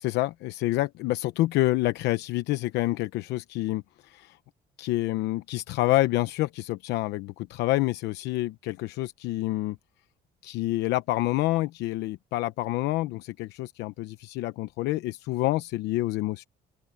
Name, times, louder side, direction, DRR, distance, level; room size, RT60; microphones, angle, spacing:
voice 1, 0.0-4.4 4.8-9.8 10.4-16.4, left 17 dB, 85° left, 0.9 m, -28 dB
open air
cardioid pair, 110°, 17 cm